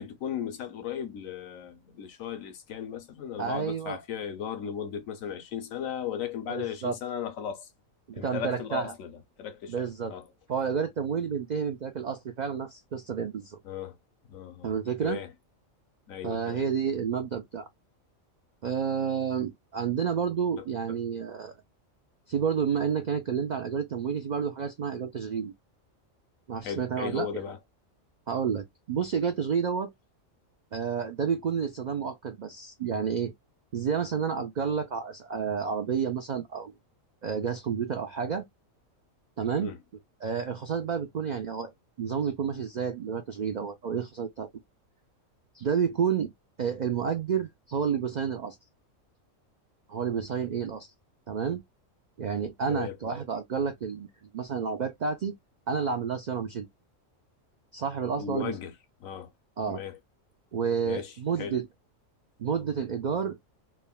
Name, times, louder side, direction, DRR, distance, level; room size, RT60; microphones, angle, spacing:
voice 1, 0.0-7.7 8.1-10.3 13.6-14.0 14.2-14.7 15.0-15.3 16.1-16.6 20.6-20.7 26.6-27.6 39.6-39.8 52.7-53.0 58.2-58.7 59.0-59.3 59.7-60.0 60.8-61.6, left 8 dB, 80° left, 1.2 m, -36 dB
voice 2, 3.4-4.0 6.5-7.0 8.2-8.9 9.7-10.1 10.5-13.6 14.6-15.2 16.2-17.7 18.6-21.5 22.3-25.5 26.5-27.3 28.3-29.9 30.7-33.3 33.7-36.7 37.2-38.4 39.4-39.7 40.2-41.7 42.0-44.5 45.5-46.3 46.6-48.6 49.9-50.9 51.3-51.6 52.2-55.3 55.7-56.7 57.7-58.5 59.6-59.8 60.5-61.7 62.4-63.4, right 7 dB, 90° right, 0.3 m, -30 dB
3.4 x 2.1 x 2.3 m
omnidirectional pair, 1.4 m